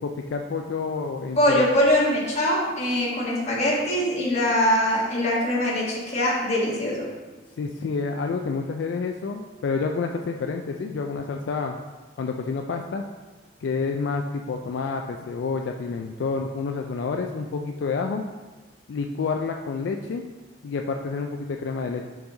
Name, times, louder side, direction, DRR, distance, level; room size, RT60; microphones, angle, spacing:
voice 1, 0.0-1.6 7.6-11.7 12.2-13.0 13.6-18.2 18.9-20.2 20.6-22.1, left 4 dB, 75° left, 3 dB, 0.3 m, -29 dB
voice 2, 1.4-7.1, left 1 dB, 35° left, -5 dB, 1.4 m, -22 dB
5.3 x 4.8 x 3.8 m, 1.3 s
head